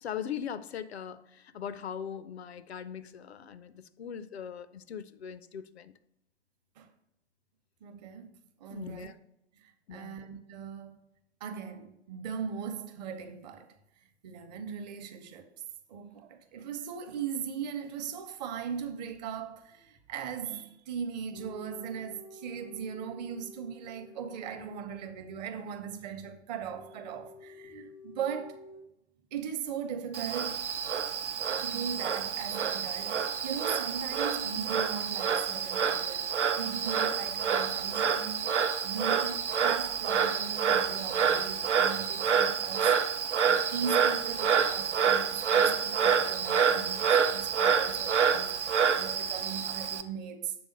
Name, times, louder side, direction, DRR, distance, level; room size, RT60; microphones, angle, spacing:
voice 1, 0.0-5.9 8.7-9.2 9.9-10.2, left 8 dB, 65° left, 0.5 m, -40 dB
voice 2, 7.8-8.3 8.6-9.1 9.6-11.0 11.4-13.7 14.2-15.5 15.9-28.6 29.3-30.7 31.5-36.3 36.6-43.0 43.4-50.5, right 7 dB, 35° right, 0.7 m, -39 dB
sound 1, 21.3-25.3 26.6-28.8, left 2 dB, 5° left, 0.3 m, -51 dB
Frog, 30.1-50.0, right 6 dB, 80° right, 0.6 m, -28 dB
6.9 x 3.5 x 5.1 m
figure-of-eight pair, 105°, 35 cm